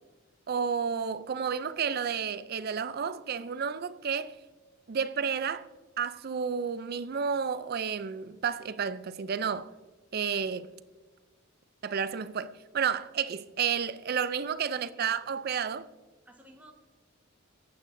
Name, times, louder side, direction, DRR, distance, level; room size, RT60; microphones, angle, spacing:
voice 1, 0.5-4.4 4.9-5.7 6.0-9.7 10.1-10.7 11.8-15.9, right 7 dB, 50° right, 0.4 m, -31 dB
voice 2, 14.7-15.3 16.2-16.7, right 1 dB, 10° right, 1.3 m, -54 dB
14.5 x 9.2 x 2.6 m
head